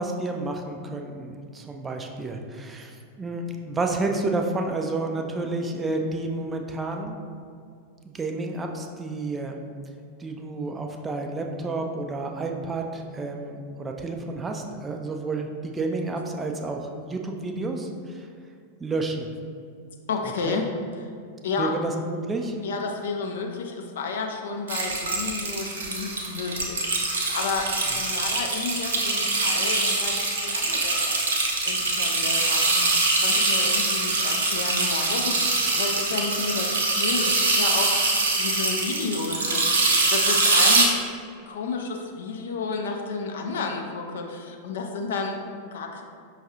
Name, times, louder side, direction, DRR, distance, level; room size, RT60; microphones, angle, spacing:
voice 1, 0.0-7.2 8.1-9.6 10.2-18.3 18.8-19.3 20.5-20.6 21.6-22.6, right 2 dB, 15° right, 3 dB, 0.3 m, -30 dB
voice 2, 20.1-20.7 21.0-21.1 21.4-21.8 22.6-27.7 27.9-31.1 31.6-32.9 33.2-40.9 41.5-46.0, left 4 dB, 60° left, 3 dB, 0.4 m, -31 dB
sound 1, 24.7-40.9, right 2 dB, 70° right, 0.6 m, -24 dB
5.3 x 2.3 x 2.7 m, 2.3 s
figure-of-eight pair, 90°, 0 cm